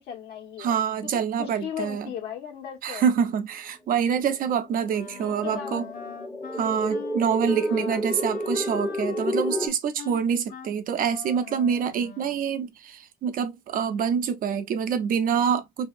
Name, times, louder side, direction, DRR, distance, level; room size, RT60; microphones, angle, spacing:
voice 1, 0.0-0.7 1.4-3.1 5.2-5.8 7.7-8.0, left 9 dB, 75° left, 1.2 m, -36 dB
voice 2, 0.6-2.1 2.8-5.8 6.6-15.9, right 7 dB, 55° right, 0.6 m, -26 dB
sound 1, 4.5-9.7, equal, 10° left, 0.7 m, -30 dB
Wind instrument woodwind instrument, 4.9-12.5, left 8 dB, 55° left, 0.7 m, -41 dB
2.8 x 2.7 x 2.5 m
cardioid pair, 110°, 17 cm